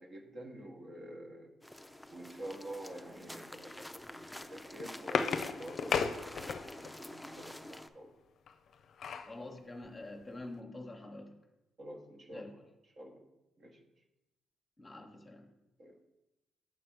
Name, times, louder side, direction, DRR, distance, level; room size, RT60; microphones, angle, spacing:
voice 1, 0.0-1.5 2.1-8.1 11.8-12.6 13.0-13.3 13.6-13.8 15.8-16.0, right 1 dB, 50° right, 2 dB, 1.2 m, -48 dB
sound 1, 1.6-7.9, left 1 dB, 5° left, 0.4 m, -48 dB
sound 2, 4.4-6.9 8.5-9.4 9.8-9.9 10.2-10.4, left 6 dB, 60° left, 0.5 m, -35 dB
voice 2, 9.3-11.3 12.3-12.5 14.8-15.5, left 2 dB, 20° left, 4 dB, 0.9 m, -46 dB
7.5 x 3.4 x 6.1 m, 0.94 s
cardioid pair, 90°, 0 cm